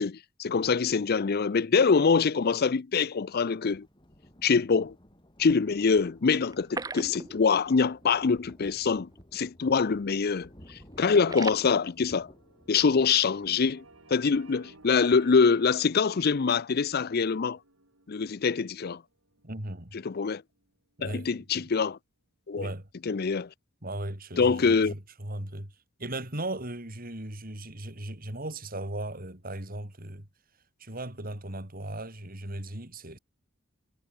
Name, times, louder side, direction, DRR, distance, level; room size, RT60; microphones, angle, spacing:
voice 1, 0.0-3.9 4.4-4.9 5.4-12.3 12.7-13.8 14.1-17.6 18.1-19.0 20.0-20.4 21.0-22.0 22.5-22.7 23.1-23.5 24.4-24.9, left 5 dB, 50° left, 0.5 m, -24 dB
Thunder, 3.1-15.3, equal, 25° left, 4.6 m, -56 dB
sound 1, 6.5-7.7 8.0-8.1 8.5-8.6 9.2-9.4 9.7-10.1 10.4-11.6, right 3 dB, 20° right, 0.6 m, -38 dB
sound 2, 9.1-21.4, right 3 dB, 85° right, 5.9 m, -59 dB
voice 2, 19.4-20.0 21.0-21.7 22.6-22.9 23.8-30.3 30.8-33.2, right 1 dB, 45° right, 4.4 m, -37 dB
head